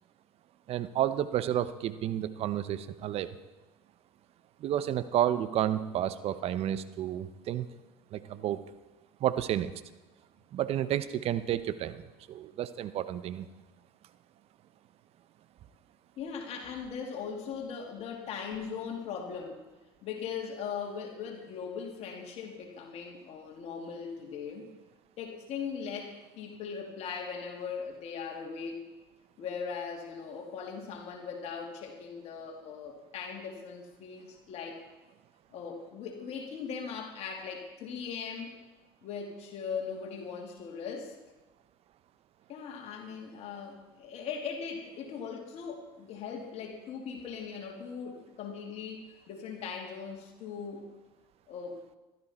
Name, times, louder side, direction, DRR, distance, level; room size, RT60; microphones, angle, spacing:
voice 1, 0.7-3.3 4.6-7.7 8.1-8.6 9.2-9.7 10.5-12.0 12.3-13.5, right 11 dB, 55° right, 13 dB, 0.9 m, -31 dB
voice 2, 16.2-19.6 20.0-24.7 25.2-28.9 29.4-34.8 35.5-38.5 39.0-41.2 42.5-50.8 51.5-51.8, left 6 dB, 60° left, 2 dB, 2.5 m, -39 dB
16.5 x 12.5 x 4.3 m, 1.1 s
hypercardioid pair, 80°, 12 cm